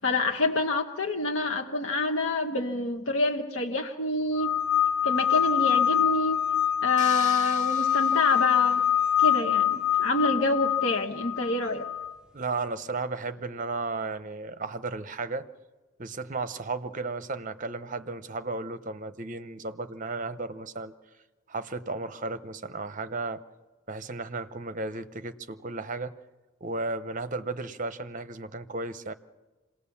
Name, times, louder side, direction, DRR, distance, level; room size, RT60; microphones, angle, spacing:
voice 1, 0.0-4.5 5.0-6.4 6.8-8.8 9.2-11.8, left 2 dB, 70° left, 2 dB, 1.1 m, -27 dB
sound 1, 4.3-12.1, left 9 dB, 5° right, 0.7 m, -25 dB
sound 2, 7.0-9.2, left 4 dB, 40° left, 1.8 m, -41 dB
voice 2, 12.3-15.5 16.0-20.9 21.5-23.4 23.9-26.1 26.6-29.1, right 3 dB, 40° right, 11 dB, 0.8 m, -34 dB
26.0 x 19.0 x 7.1 m, 1.2 s
head